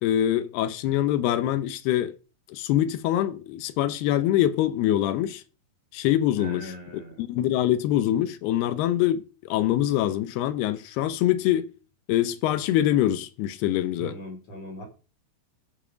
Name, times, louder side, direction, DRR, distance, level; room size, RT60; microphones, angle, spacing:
voice 1, 0.0-2.1 2.5-5.4 5.9-11.7 12.1-14.2, left 12 dB, 75° left, 2.7 m, -24 dB
voice 2, 6.4-7.2 14.0-14.8, right 1 dB, 40° left, 3.7 m, -39 dB
14.0 x 5.5 x 5.2 m
omnidirectional pair, 5.1 m